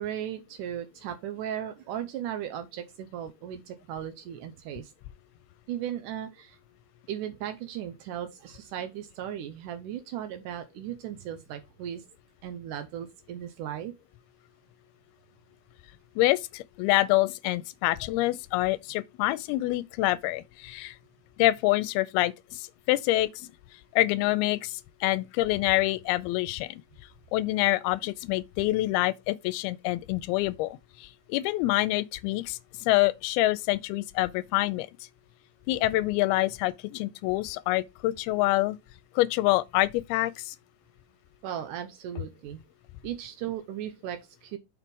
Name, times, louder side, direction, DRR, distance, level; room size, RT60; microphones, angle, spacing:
voice 1, 0.0-4.9 5.7-6.6 7.1-12.0 12.4-13.9 41.4-42.6 43.0-44.6, right 10 dB, 85° right, 1.8 m, -36 dB
voice 2, 16.2-21.0 21.4-23.5 23.9-26.8 27.3-34.9 35.7-38.8 39.2-40.6, left 18 dB, 80° left, 2.4 m, -26 dB
6.4 x 4.3 x 5.3 m
omnidirectional pair, 4.6 m